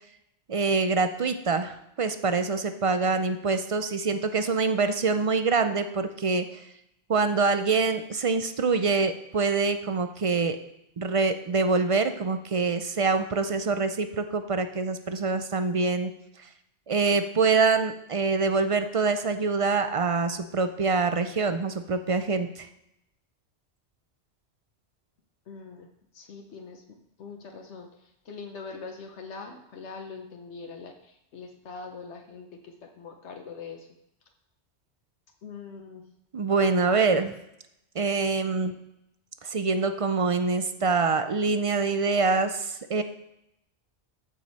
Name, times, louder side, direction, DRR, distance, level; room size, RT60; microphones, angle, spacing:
voice 1, 0.5-6.6 7.1-10.6 11.0-16.1 16.9-22.7 36.3-37.3 37.9-38.7 39.4-43.0, right 4 dB, 45° right, 9 dB, 0.4 m, -25 dB
voice 2, 25.5-25.9 26.1-33.9 35.4-36.0, left 4 dB, 80° left, 3 dB, 1.2 m, -43 dB
14.0 x 5.2 x 4.1 m, 0.83 s
omnidirectional pair, 1.2 m